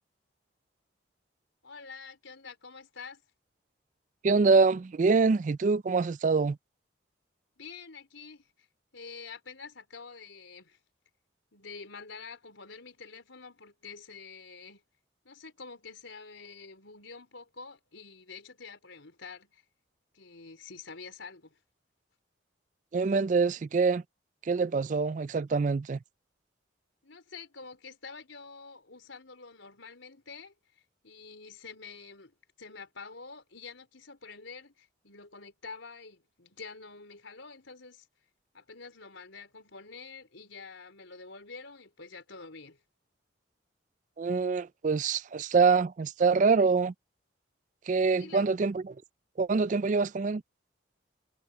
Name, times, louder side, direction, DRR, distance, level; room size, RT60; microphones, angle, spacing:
voice 1, 1.6-3.2 7.6-8.7 8.9-10.8 11.5-14.8 15.2-19.6 20.1-21.6 27.0-38.1 38.5-42.8 48.2-48.5, left 4 dB, 90° left, 4.7 m, -47 dB
voice 2, 4.2-6.6 22.9-24.0 24.5-26.0 44.2-46.9 47.9-48.9 49.4-50.4, right 4 dB, 40° right, 0.3 m, -25 dB
head